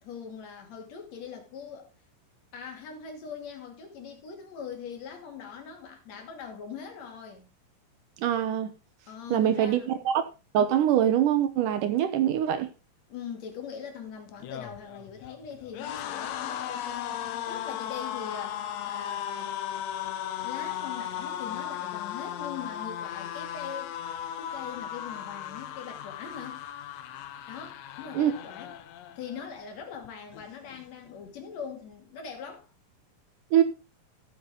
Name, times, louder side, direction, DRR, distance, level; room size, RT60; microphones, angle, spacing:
voice 1, 0.0-1.9 2.5-7.5 9.1-10.1 13.1-19.5 20.4-23.9 24.4-26.6 27.5-28.7 29.2-32.7, left 7 dB, 50° left, 3.5 m, -42 dB
voice 2, 8.2-8.8 9.3-10.2 10.5-12.7 28.2-28.3 33.5-33.6, right 10 dB, 70° right, 2.3 m, -24 dB
sound 1, 14.3-29.5 29.8-30.1 30.3-31.1, left 10 dB, 70° left, 1.6 m, -36 dB
13.5 x 8.1 x 3.8 m
omnidirectional pair, 4.1 m